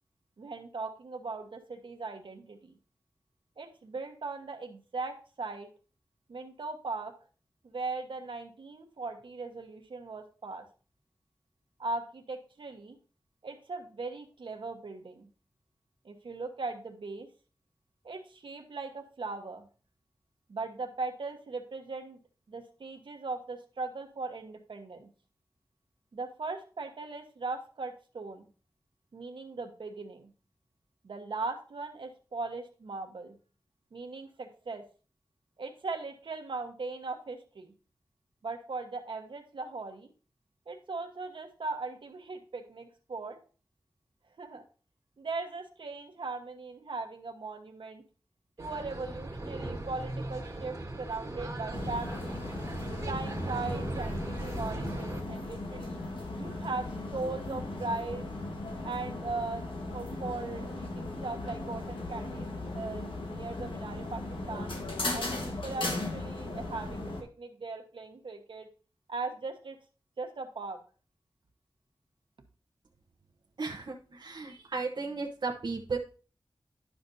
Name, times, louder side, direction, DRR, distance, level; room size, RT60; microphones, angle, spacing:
voice 1, 0.4-2.7 3.6-5.7 6.3-7.1 7.6-10.7 11.8-13.0 13.4-15.3 16.0-17.3 18.0-19.7 20.5-22.2 22.5-25.1 26.1-28.5 29.1-30.3 31.0-33.4 33.9-34.8 35.6-37.7 38.4-40.1 40.7-43.4 44.4-44.6 45.2-48.0 48.6-52.5 53.0-56.0 56.4-58.3 58.8-62.5 62.7-64.7 65.1-68.7 69.1-69.8 70.2-70.8, right 3 dB, 80° right, 4 dB, 1.2 m, -39 dB
sound 1, 48.6-55.2, right 1 dB, 40° right, 1.5 m, -38 dB
sound 2, 51.7-67.2, left 2 dB, 90° left, 1.4 m, -37 dB
voice 2, 73.6-76.0, right 4 dB, 60° right, -1 dB, 0.9 m, -35 dB
11.0 x 6.0 x 2.7 m, 0.37 s
wide cardioid pair, 90°, 8 cm